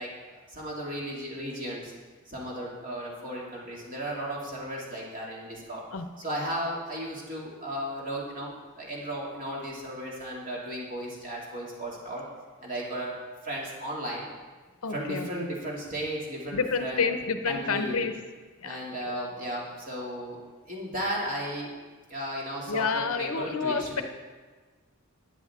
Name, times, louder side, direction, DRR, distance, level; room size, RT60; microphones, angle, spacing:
voice 1, 0.0-1.9 2.3-5.8 6.2-12.3 12.6-14.3 14.9-17.2 17.5-18.1 18.6-20.4 20.7-21.7 22.1-24.0, equal, 35° right, -4 dB, 2.5 m, -35 dB
voice 2, 14.8-15.5 16.5-18.1 18.6-19.1 22.7-24.0, left 5 dB, 75° left, 7 dB, 0.8 m, -29 dB
13.5 x 9.9 x 3.6 m, 1.4 s
head